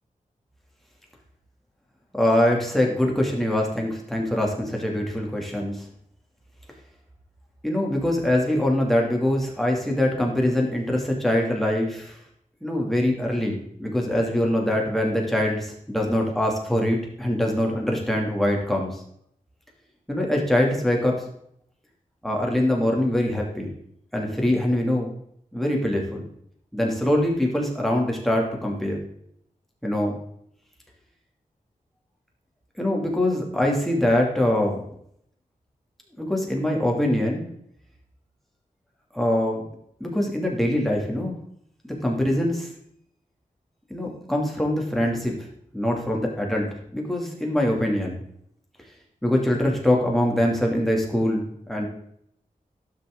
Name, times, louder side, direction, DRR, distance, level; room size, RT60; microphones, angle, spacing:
voice 1, 2.2-5.8 7.6-12.2 12.6-19.0 20.1-21.2 22.2-23.7 24.1-25.1 25.5-26.2 26.7-29.0 29.8-30.2 32.8-34.8 36.2-37.4 39.1-39.6 40.0-41.3 41.8-42.7 43.9-45.4 45.7-48.2 49.2-51.9, left 1 dB, ahead, -1 dB, 2.5 m, -23 dB
12.0 x 6.0 x 3.8 m, 0.69 s
wide cardioid pair, 80°, 14 cm